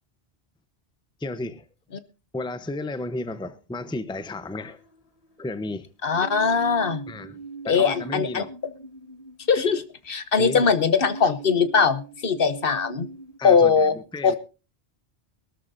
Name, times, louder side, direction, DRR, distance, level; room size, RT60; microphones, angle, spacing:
voice 1, 1.2-1.6 2.3-4.8 5.4-5.9 7.1-7.4 7.6-8.5 9.5-9.7 10.4-10.7 13.4-14.4, left 2 dB, 5° left, 0.7 m, -33 dB
sound 1, 4.4-5.5 6.1-10.0 11.0-13.4, right 4 dB, 35° left, 1.7 m, -40 dB
voice 2, 6.0-7.0 7.7-8.4 9.5-13.1 13.4-14.0 14.2-14.4, left 5 dB, 55° left, 1.1 m, -21 dB
22.5 x 13.0 x 2.6 m
omnidirectional pair, 1.1 m